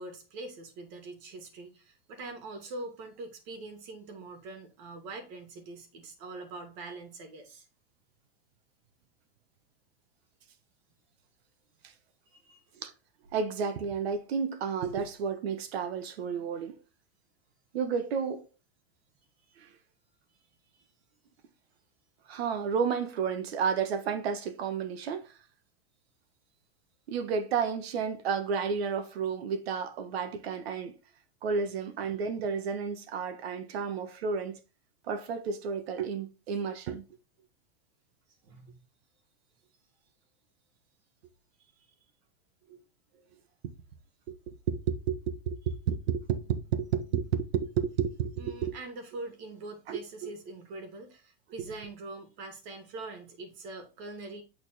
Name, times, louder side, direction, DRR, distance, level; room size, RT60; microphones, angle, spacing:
voice 1, 0.0-7.7 12.3-12.6 20.8-20.9 30.1-30.3 38.4-38.8 41.6-41.8 48.3-54.4, right 2 dB, 45° right, 2.5 m, -43 dB
voice 2, 13.3-16.8 17.7-18.4 19.6-19.7 22.3-25.3 27.1-31.0 31.4-34.6 35.1-37.0 42.7-42.8 44.3-48.8 49.9-50.3, right 6 dB, 80° right, 1.6 m, -32 dB
9.1 x 4.4 x 4.2 m
supercardioid pair, 160°, 30 cm